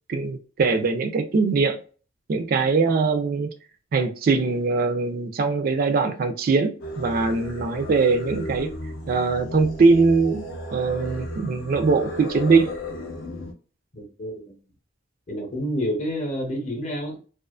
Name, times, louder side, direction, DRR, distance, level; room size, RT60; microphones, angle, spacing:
voice 1, 0.1-1.8 2.3-3.5 3.9-8.7 9.1-10.4 10.7-12.7, right 4 dB, 45° right, 0.3 m, -21 dB
Singing, 6.8-13.5, left 1 dB, 70° left, 0.5 m, -35 dB
voice 2, 13.9-14.5 15.3-17.2, equal, 35° left, 0.7 m, -29 dB
2.4 x 2.4 x 2.3 m
head